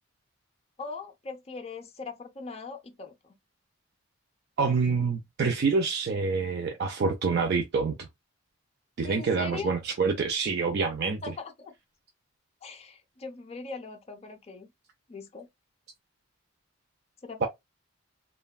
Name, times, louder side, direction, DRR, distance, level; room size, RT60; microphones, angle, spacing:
voice 1, 0.8-3.3 9.0-9.7 11.2-11.7 12.6-14.7 15.1-15.5 17.2-17.5, left 4 dB, 30° left, 0.4 m, -40 dB
voice 2, 4.6-8.1 9.0-11.2 17.4-17.5, right 4 dB, 50° right, 0.4 m, -27 dB
3.2 x 2.2 x 2.2 m
head